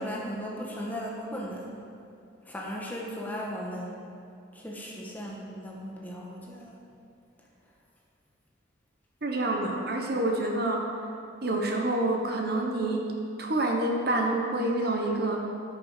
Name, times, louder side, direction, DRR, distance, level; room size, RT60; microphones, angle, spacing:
voice 1, 0.0-1.7 2.4-4.0 4.5-6.8, equal, 10° left, -3 dB, 1.3 m, -36 dB
voice 2, 9.2-10.8 11.4-13.0 13.4-15.5, right 2 dB, 55° right, 1 dB, 1.1 m, -27 dB
13.0 x 5.9 x 5.0 m, 2.5 s
head